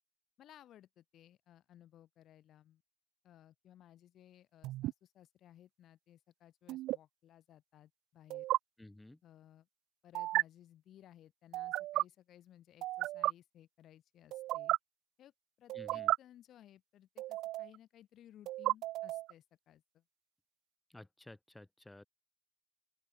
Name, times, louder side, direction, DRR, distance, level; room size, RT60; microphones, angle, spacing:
voice 1, 0.4-2.8 3.2-8.5 9.2-9.7 10.0-14.7 15.2-15.3 15.6-20.0, left 11 dB, 55° left, 2.9 m, -60 dB
sound 1, 4.6-4.9 6.7-7.0 8.3-8.6 10.1-10.4 11.5-12.0 12.8-13.3 14.3-14.8 15.7-16.2 17.2-17.8 18.5-19.3, right 16 dB, 65° right, 0.5 m, -34 dB
voice 2, 8.8-9.2 15.7-16.1 20.9-22.0, left 1 dB, 10° left, 4.9 m, -54 dB
open air
figure-of-eight pair, 45°, 0 cm